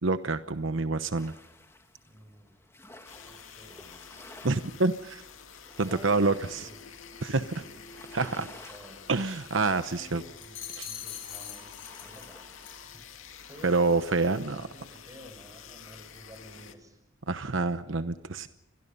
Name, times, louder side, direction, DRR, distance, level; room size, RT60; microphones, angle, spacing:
voice 1, 0.0-1.3 4.4-5.2 5.8-6.7 7.2-7.5 8.1-8.5 9.1-10.2 10.8-10.9 13.6-14.7 17.3-18.5, right 3 dB, 75° right, 10 dB, 1.0 m, -27 dB
sound 1, 1.1-14.5, left 2 dB, 15° left, 2.9 m, -54 dB
voice 2, 2.1-2.5 3.2-4.1 5.8-6.9 7.5-7.8 8.2-9.0 9.7-12.4 12.8-13.9 14.5-17.0, equal, 15° right, 7 dB, 6.3 m, -51 dB
sound 2, 3.1-16.7, left 6 dB, 90° left, 2.3 m, -49 dB
sound 3, 10.4-12.3 12.6-12.9, left 10 dB, 65° left, 6.3 m, -42 dB
29.5 x 23.5 x 5.5 m, 0.90 s
head